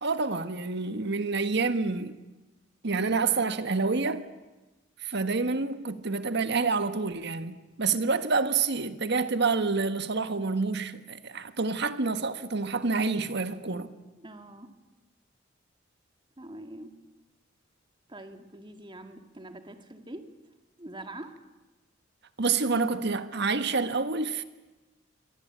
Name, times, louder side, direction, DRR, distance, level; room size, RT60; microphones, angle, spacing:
voice 1, 0.0-2.2 2.8-4.2 5.0-13.9 22.4-24.4, right 4 dB, 60° right, 1.5 m, -28 dB
voice 2, 14.2-14.7 16.4-16.9 18.1-20.3 20.8-21.3, right 1 dB, 25° right, 2.1 m, -44 dB
26.5 x 23.5 x 8.8 m
head